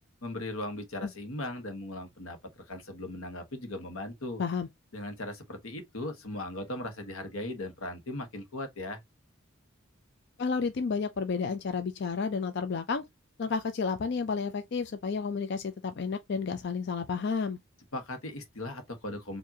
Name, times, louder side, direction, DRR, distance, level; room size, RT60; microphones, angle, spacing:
voice 1, 0.2-4.4 4.9-9.0 17.9-19.4, left 1 dB, 90° left, 1.2 m, -38 dB
voice 2, 10.4-13.0 13.4-17.6, left 5 dB, 55° left, 0.4 m, -31 dB
4.7 x 2.6 x 2.7 m
head